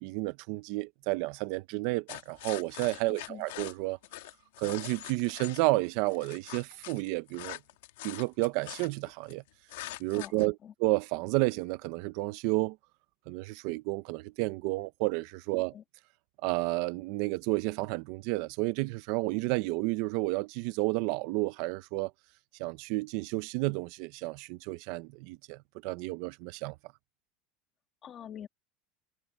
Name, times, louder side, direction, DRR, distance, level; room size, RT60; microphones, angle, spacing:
voice 1, 0.0-4.0 4.6-7.6 8.0-9.4 10.0-12.8 13.3-15.7 16.4-22.1 22.6-26.7, right 22 dB, 60° right, 0.7 m, -31 dB
sound 1, 2.1-5.6 6.1-9.3 9.7-10.5, left 17 dB, 85° left, 1.5 m, -43 dB
voice 2, 3.1-3.4 10.1-10.7 15.6-15.8 28.0-28.5, left 9 dB, 30° left, 2.1 m, -46 dB
supercardioid pair, 155°, 0 cm